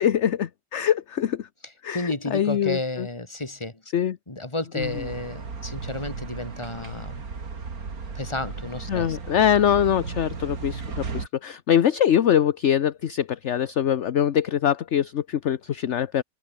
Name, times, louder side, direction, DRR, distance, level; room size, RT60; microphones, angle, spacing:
voice 1, 0.0-1.5 1.8-3.1 3.9-4.2 4.7-5.0 8.9-10.8 11.1-16.2, left 9 dB, 55° left, 1.1 m, -23 dB
voice 2, 1.9-3.8 4.3-7.1 8.1-9.2, left 2 dB, 20° left, 2.8 m, -31 dB
sound 1, 4.8-11.3, right 4 dB, 85° right, 3.0 m, -35 dB
omnidirectional pair, 1.5 m